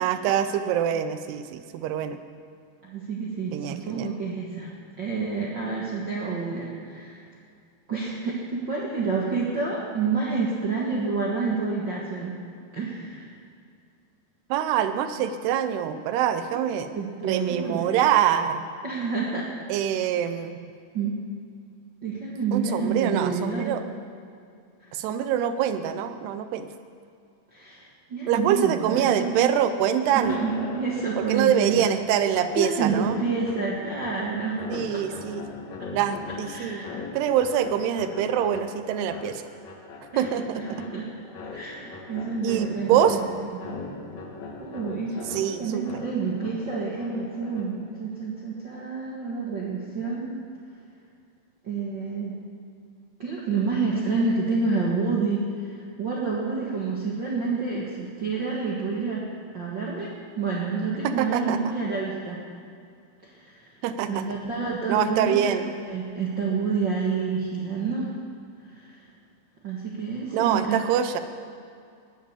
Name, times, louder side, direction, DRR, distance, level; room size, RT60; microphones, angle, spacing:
voice 1, 0.0-2.2 3.5-4.1 14.5-16.9 17.2-18.7 19.7-20.6 22.5-23.8 24.9-26.7 28.3-30.4 31.2-33.2 34.7-35.4 35.9-36.9 37.1-39.4 40.2-40.6 42.4-43.2 45.3-45.8 61.0-61.6 63.8-64.2 64.9-65.7 70.3-71.2, right 9 dB, 85° right, 9 dB, 2.7 m, -25 dB
voice 2, 2.8-4.7 5.0-7.3 7.9-12.3 12.7-13.3 16.9-17.9 18.8-19.5 20.9-21.2 22.0-23.8 24.8-24.9 27.5-29.5 30.1-31.8 32.5-35.2 36.5-36.9 40.1-40.2 40.5-41.1 41.5-43.2 43.5-43.8 44.6-50.4 51.6-52.4 53.2-59.2 59.5-62.4 63.2-63.7 64.1-65.5 65.8-68.1 68.7-69.0 69.6-70.8, right 4 dB, 55° right, -5 dB, 1.2 m, -29 dB
sound 1, 30.1-48.0, left 3 dB, 55° left, 2.2 m, -40 dB
19.0 x 7.4 x 7.2 m, 2.3 s
omnidirectional pair, 4.8 m